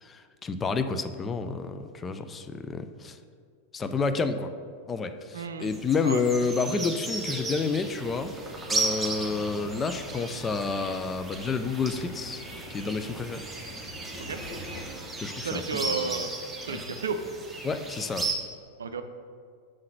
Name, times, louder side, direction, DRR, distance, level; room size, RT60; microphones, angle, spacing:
voice 1, 0.0-3.2 3.7-4.5 4.9-8.3 8.7-13.4 15.2-15.8 16.7-16.9 17.6-18.3, left 4 dB, 20° left, 9 dB, 0.4 m, -30 dB
voice 2, 5.3-5.7 6.0-6.2 14.2-14.4 15.4-16.3 16.7-17.2 18.8-19.0, right 5 dB, 70° right, 8 dB, 0.4 m, -32 dB
sound 1, 5.6-18.3, right 3 dB, 10° right, 1.0 m, -35 dB
sound 2, 8.0-14.9, left 1 dB, 55° left, 1.0 m, -46 dB
6.3 x 3.8 x 6.0 m, 2.1 s
figure-of-eight pair, 90°, 0 cm